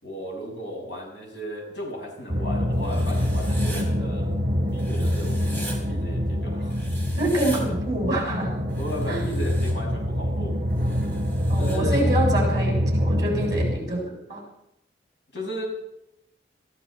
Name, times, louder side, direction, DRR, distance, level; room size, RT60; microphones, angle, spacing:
voice 1, 0.0-4.3 4.7-6.8 8.8-10.5 11.6-12.0 15.3-15.7, equal, 80° left, -1 dB, 6.8 m, -35 dB
sound 1, 2.3-13.8, equal, 45° right, 3.8 m, -25 dB
Writing, 2.8-3.8 4.8-5.8 6.7-7.6 8.7-9.7 10.8-11.8, right 1 dB, 10° left, 4.0 m, -41 dB
voice 2, 7.2-8.6 9.1-9.2 11.5-14.4, right 1 dB, 20° right, -2 dB, 6.6 m, -26 dB
22.5 x 15.0 x 4.4 m, 0.83 s
head